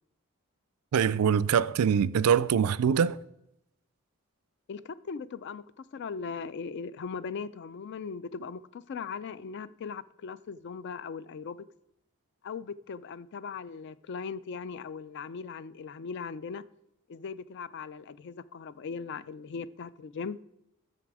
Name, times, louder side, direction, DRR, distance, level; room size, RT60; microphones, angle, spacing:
voice 1, 0.9-3.2, right 7 dB, 90° right, 0.4 m, -24 dB
voice 2, 4.7-11.7 12.4-16.6 17.1-20.4, left 5 dB, 55° left, 0.3 m, -39 dB
7.3 x 6.8 x 4.7 m
head